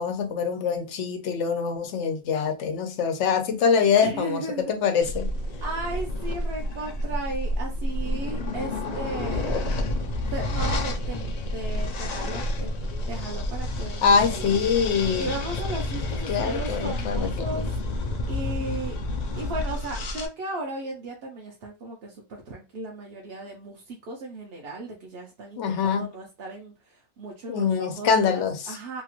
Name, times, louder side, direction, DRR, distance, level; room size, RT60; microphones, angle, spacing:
voice 1, 0.0-4.4 4.7-5.3 14.0-15.3 16.3-17.6 25.6-26.1 27.5-28.6, left 6 dB, 90° left, 1.0 m, -24 dB
voice 2, 4.0-4.7 5.6-9.7 10.3-12.7 13.1-14.6 15.2-19.0 19.3-29.0, right 2 dB, 65° right, 0.9 m, -36 dB
sound 1, 5.0-20.3, left 1 dB, 55° left, 0.4 m, -29 dB
2.9 x 2.4 x 3.0 m
omnidirectional pair, 1.2 m